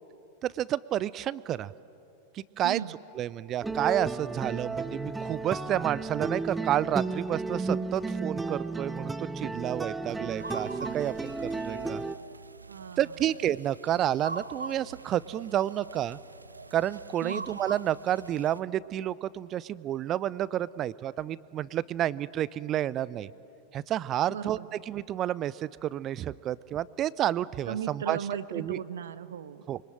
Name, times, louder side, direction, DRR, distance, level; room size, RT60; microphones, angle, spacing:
voice 1, 0.4-1.7 2.3-2.8 3.2-12.0 13.0-16.2 16.7-23.3 23.7-28.2 28.5-28.8 29.7-29.8, right 12 dB, 30° right, 20 dB, 0.6 m, -30 dB
voice 2, 2.6-3.0 12.7-13.1 17.2-17.5 24.3-24.7 27.7-29.7, right 8 dB, 65° right, 15 dB, 0.9 m, -36 dB
sound 1, 3.6-12.2, right 3 dB, 10° right, 1.0 m, -33 dB
sound 2, 10.4-18.6, right 3 dB, 80° right, 0.6 m, -43 dB
26.0 x 24.5 x 9.0 m, 2.7 s
figure-of-eight pair, 90°, 0 cm